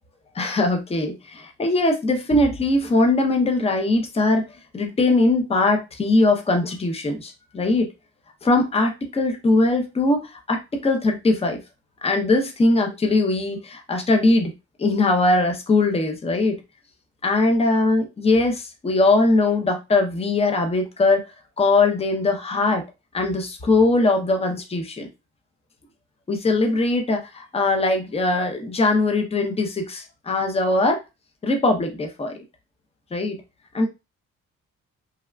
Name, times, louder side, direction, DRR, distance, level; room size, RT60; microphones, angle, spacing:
voice 1, 0.3-4.4 4.7-7.9 8.4-11.6 12.0-14.5 14.8-16.6 17.2-21.2 21.6-22.8 23.1-25.1 26.3-31.0 31.4-32.3 33.1-33.4 33.7-33.9, left 2 dB, 20° left, 0.7 m, -21 dB
3.4 x 2.3 x 2.2 m
cardioid pair, 90°, 30 cm